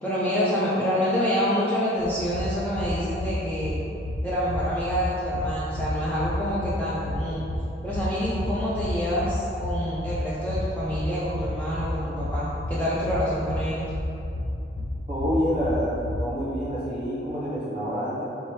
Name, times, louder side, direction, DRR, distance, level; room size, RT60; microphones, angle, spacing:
voice 1, 0.0-3.8 4.2-7.5 7.8-13.9, equal, 10° left, -9 dB, 0.4 m, -27 dB
sound 1, 2.0-16.2, left 1 dB, 65° left, 0.5 m, -31 dB
voice 2, 15.1-18.2, equal, 30° right, -9 dB, 1.1 m, -27 dB
3.6 x 2.9 x 3.3 m, 2.7 s
head